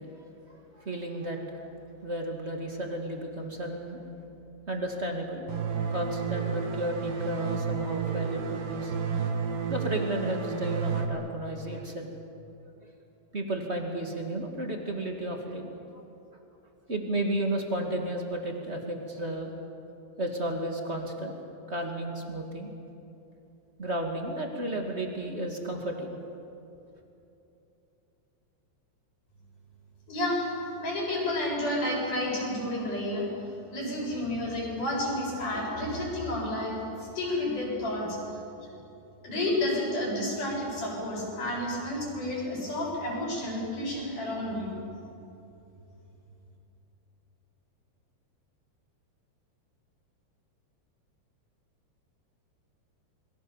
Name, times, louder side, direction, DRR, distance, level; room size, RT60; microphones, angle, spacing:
voice 1, 0.0-1.7 2.0-4.0 4.7-5.5 5.9-9.0 9.7-12.1 12.6-12.7 13.3-15.7 15.9-16.0 16.9-19.5 20.2-21.4 21.7-22.7 23.8-26.1, right 1 dB, 30° right, 2 dB, 1.3 m, -33 dB
sound 1, 5.5-11.0, right 6 dB, 60° right, 3.1 m, -31 dB
voice 2, 30.1-33.3 33.7-38.2 39.2-44.7, left 1 dB, 45° left, -4 dB, 9.3 m, -31 dB
29.0 x 23.0 x 7.3 m, 2.9 s
omnidirectional pair, 5.0 m